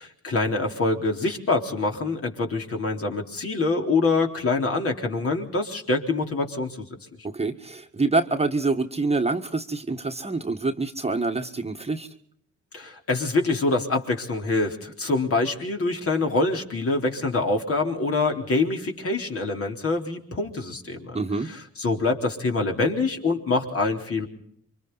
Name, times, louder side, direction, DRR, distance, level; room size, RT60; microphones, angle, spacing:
voice 1, 0.2-6.9 12.7-21.2 21.4-24.3, left 3 dB, 50° left, 2 dB, 3.9 m, -25 dB
voice 2, 7.2-12.1 21.1-21.5, right 3 dB, 20° right, 5 dB, 1.6 m, -26 dB
28.0 x 24.5 x 4.1 m, 0.66 s
cardioid pair, 90°, 30 cm